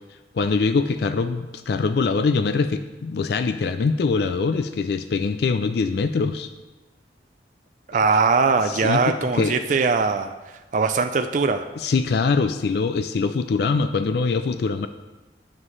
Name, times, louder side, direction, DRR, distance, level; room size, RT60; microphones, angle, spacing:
voice 1, 0.3-6.5 8.7-9.5 11.8-14.9, left 4 dB, 60° left, 10 dB, 0.3 m, -23 dB
voice 2, 7.9-10.3 10.7-11.7, right 4 dB, 45° right, 7 dB, 0.4 m, -21 dB
9.8 x 7.2 x 3.2 m, 1.2 s
head